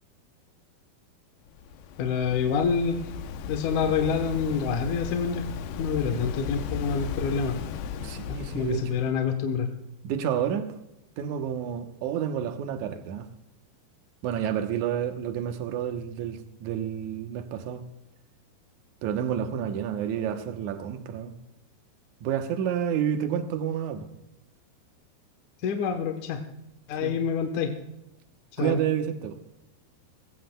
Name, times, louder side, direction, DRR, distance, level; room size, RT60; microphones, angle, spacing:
Waves surf, 1.5-9.1, left 7 dB, 85° left, 2.9 m, -36 dB
voice 1, 2.0-3.0 3.5-5.4 5.8-7.6 8.3-9.7 25.6-26.4 26.9-27.7 28.5-28.8, left 6 dB, 65° left, 5 dB, 2.1 m, -27 dB
voice 2, 8.0-8.9 10.0-10.7 11.2-13.3 14.2-17.8 19.0-21.3 22.2-24.1 27.0-27.2 28.6-29.4, right 9 dB, 70° right, 7 dB, 1.9 m, -29 dB
20.0 x 17.5 x 2.3 m, 0.92 s
omnidirectional pair, 4.6 m